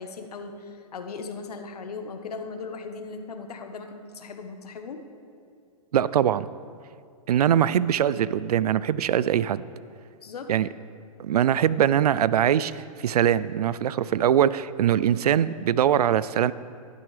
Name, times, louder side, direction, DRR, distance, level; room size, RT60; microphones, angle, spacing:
voice 1, 0.0-5.1 10.2-10.5, left 4 dB, 85° left, 6 dB, 1.2 m, -38 dB
voice 2, 5.9-6.5 7.3-9.6 10.5-10.7 11.2-16.5, right 10 dB, 90° right, 18 dB, 0.4 m, -22 dB
12.0 x 12.0 x 3.3 m, 2.3 s
hypercardioid pair, 150°, 19 cm